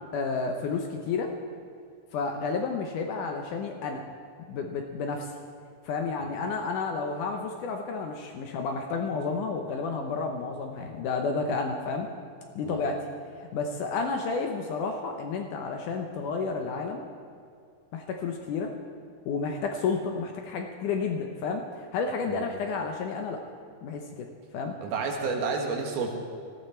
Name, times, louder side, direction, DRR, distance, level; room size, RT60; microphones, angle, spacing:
voice 1, 0.1-1.3 2.1-4.0 4.5-5.3 5.9-12.1 12.6-13.0 13.5-17.0 17.9-18.7 19.3-23.4 23.8-24.7, left 4 dB, 70° left, 3 dB, 2.0 m, -31 dB
voice 2, 24.8-26.2, right 4 dB, 75° right, 2 dB, 3.4 m, -30 dB
18.5 x 14.0 x 4.4 m, 2.3 s
omnidirectional pair, 4.4 m